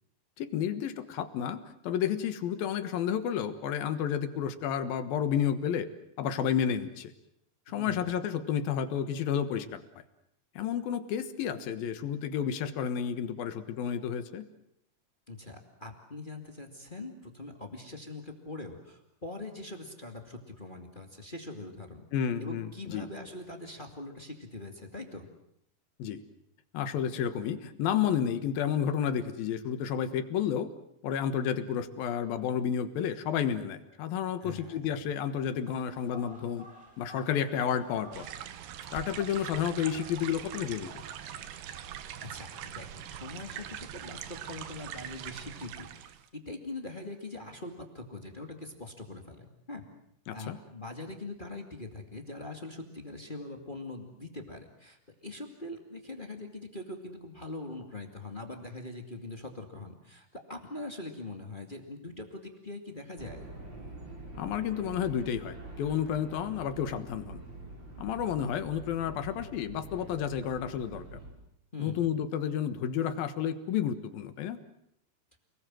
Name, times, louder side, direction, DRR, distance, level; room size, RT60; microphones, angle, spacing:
voice 1, 0.4-5.9 6.2-7.1 7.7-9.8 10.6-14.5 22.1-23.1 26.0-26.2 26.7-30.7 31.0-36.7 37.0-38.3 38.9-41.0 50.3-50.6 64.3-67.4 68.0-71.2 71.8-74.6, left 8 dB, 70° left, 10 dB, 3.0 m, -31 dB
voice 2, 7.7-8.2 15.3-22.0 22.4-25.3 34.4-35.0 42.2-49.8 50.3-63.4 71.7-72.1, left 2 dB, 20° left, 4 dB, 1.6 m, -42 dB
sound 1, 35.3-43.0, equal, 5° right, 7.5 m, -54 dB
sound 2, 38.1-46.3, right 10 dB, 80° right, 3.3 m, -42 dB
sound 3, 63.2-71.3, right 2 dB, 25° right, 5.6 m, -45 dB
28.5 x 20.0 x 7.7 m, 0.76 s
omnidirectional pair, 4.7 m